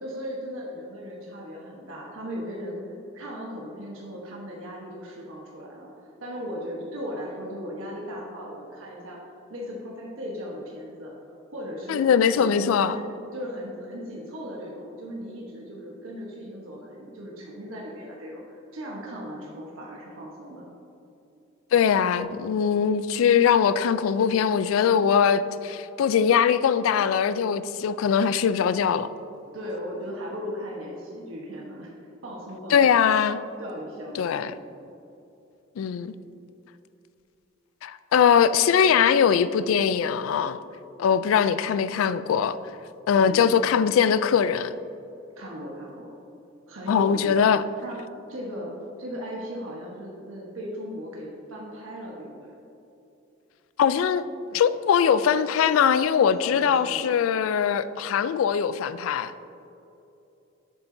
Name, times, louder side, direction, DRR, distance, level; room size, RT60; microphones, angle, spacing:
voice 1, 0.0-2.8 3.1-5.9 6.2-9.2 9.5-11.1 11.5-12.0 12.4-13.0 13.3-20.6 29.5-31.9 32.2-33.0 33.6-34.5 43.1-43.5 45.4-46.1 46.7-47.5 47.8-48.0 48.3-48.7 49.0-52.5 56.4-57.1, equal, 85° right, 1.1 m, -37 dB
voice 2, 11.9-13.0 21.7-29.1 32.7-33.4 34.2-34.5 35.8-36.1 37.8-40.6 41.0-42.6 43.1-44.7 46.9-47.6 53.8-54.3 54.5-59.3, left 7 dB, 90° left, 0.3 m, -21 dB
7.7 x 7.1 x 2.7 m
head